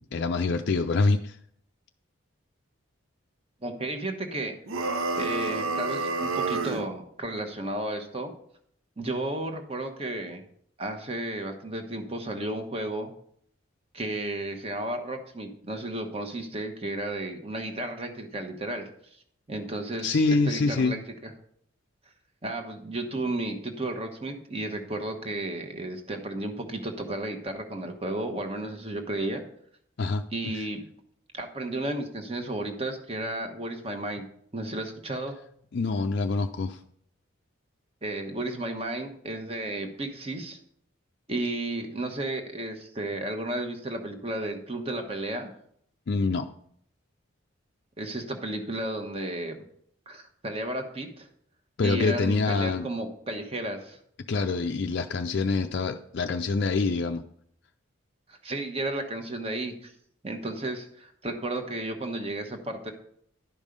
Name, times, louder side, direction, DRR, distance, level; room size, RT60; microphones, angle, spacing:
voice 1, 0.1-1.4 20.0-21.0 30.0-30.2 30.5-30.6 35.7-36.8 46.1-46.5 51.8-52.9 54.3-57.2, left 3 dB, 55° left, 5 dB, 0.4 m, -25 dB
voice 2, 3.6-4.5 5.1-8.3 9.0-10.4 10.8-13.1 13.9-19.2 19.5-21.3 22.4-29.4 30.3-30.9 31.3-34.3 34.5-35.4 38.0-40.6 41.3-45.5 48.0-49.6 50.1-51.3 51.8-54.0 58.3-59.9 60.2-62.9, right 1 dB, 30° right, 5 dB, 1.1 m, -33 dB
sound 1, 4.7-6.9, right 3 dB, 85° right, 0.8 m, -29 dB
11.5 x 5.4 x 5.1 m, 0.66 s
head